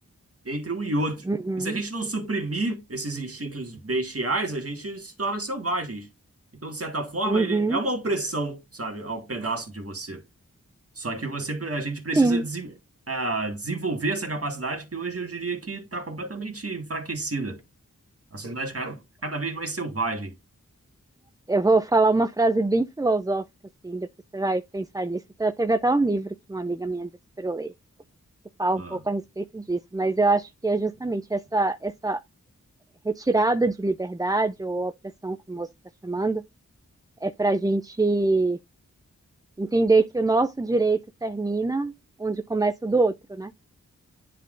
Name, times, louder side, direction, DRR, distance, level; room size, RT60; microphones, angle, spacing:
voice 1, 0.5-1.3 1.6-6.1 6.6-10.2 11.0-12.7 13.1-17.6 18.3-20.3 28.8-29.0, right 2 dB, 45° right, 1.8 m, -30 dB
voice 2, 1.3-1.8 7.3-7.8 12.2-12.4 21.5-23.4 23.8-24.1 24.3-27.1 27.4-27.7 28.6-32.2 33.0-34.9 35.2-35.7 36.0-36.4 37.2-38.6 39.6-41.9 42.2-43.5, right 3 dB, 10° right, 0.4 m, -24 dB
10.0 x 3.7 x 2.5 m
wide cardioid pair, 40°, 32 cm